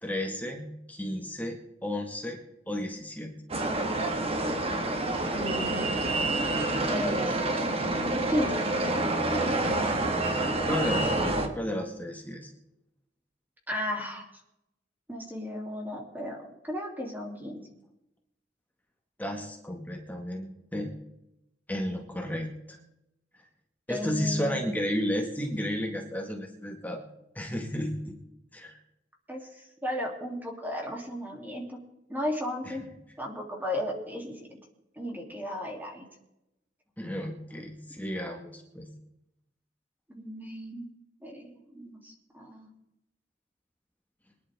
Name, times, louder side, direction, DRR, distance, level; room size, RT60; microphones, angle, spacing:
voice 1, 0.0-2.4 2.7-3.4 10.6-12.5 19.2-20.9 21.7-22.8 23.9-27.0 27.4-28.2 28.5-28.8 32.7-32.8 37.0-38.9, equal, 10° left, 1 dB, 1.8 m, -33 dB
sound 1, 3.5-11.5, right 2 dB, 35° right, 1.7 m, -28 dB
voice 2, 5.3-5.9 6.9-7.4 8.3-8.6 13.7-14.3 15.1-17.6 23.9-24.7 29.3-31.8 32.1-32.8 33.2-34.5 35.0-36.0 40.2-40.9 41.2-42.7, left 1 dB, 10° right, 0 dB, 2.9 m, -34 dB
23.5 x 11.0 x 3.6 m, 0.85 s
head